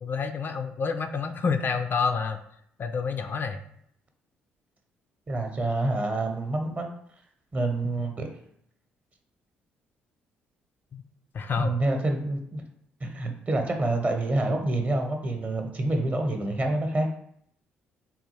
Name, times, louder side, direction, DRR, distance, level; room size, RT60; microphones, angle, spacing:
voice 1, 0.0-2.4 2.8-3.6 10.9-11.0 11.3-11.8, left 5 dB, 45° left, 8 dB, 0.3 m, -28 dB
voice 2, 5.3-6.9 7.5-8.3 11.5-12.6 13.0-17.1, right 2 dB, 35° right, 4 dB, 0.8 m, -27 dB
3.6 x 2.3 x 3.1 m, 0.68 s
hypercardioid pair, 50°, 5 cm